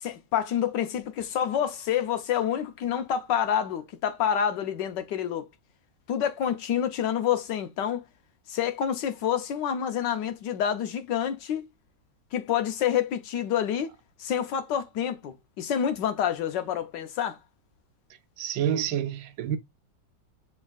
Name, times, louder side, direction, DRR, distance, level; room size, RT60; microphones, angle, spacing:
voice 1, 0.0-5.4 6.1-8.0 8.5-11.7 12.3-13.9 14.2-17.4, left 9 dB, 70° left, 1.3 m, -28 dB
voice 2, 18.4-19.6, right 9 dB, 75° right, 1.3 m, -28 dB
6.5 x 3.5 x 2.3 m
omnidirectional pair, 2.1 m